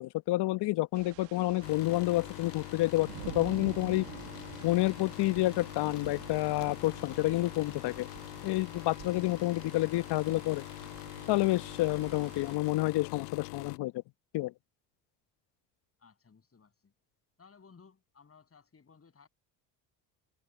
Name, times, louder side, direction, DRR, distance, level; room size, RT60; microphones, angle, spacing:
voice 1, 0.0-3.1 3.3-4.0 4.6-8.1 8.4-10.6 11.3-13.9 14.3-14.5, left 18 dB, 55° left, 1.2 m, -29 dB
sound 1, 0.9-12.6, right 26 dB, 75° right, 1.8 m, -49 dB
sound 2, 1.6-13.8, left 22 dB, 80° left, 0.9 m, -44 dB
voice 2, 16.0-16.9 17.4-19.3, left 5 dB, 30° left, 7.1 m, -59 dB
hypercardioid pair, 70°, 47 cm